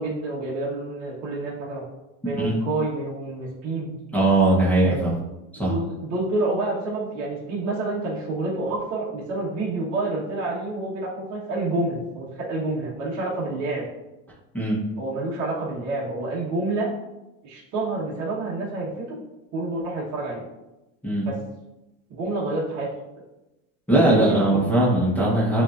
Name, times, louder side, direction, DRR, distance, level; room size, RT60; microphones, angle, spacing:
voice 1, 0.0-1.8 2.2-3.9 4.8-5.0 5.7-13.8 15.0-16.9 17.4-19.2 19.5-20.4 21.2-21.3 22.1-22.9 23.9-24.6, right 2 dB, 45° right, -5 dB, 1.4 m, -28 dB
voice 2, 4.1-5.1 5.5-5.7 14.5-14.8 21.0-21.2 23.9-25.6, right 1 dB, 5° left, -6 dB, 1.1 m, -20 dB
7.3 x 2.7 x 2.5 m, 0.97 s
supercardioid pair, 135°, 38 cm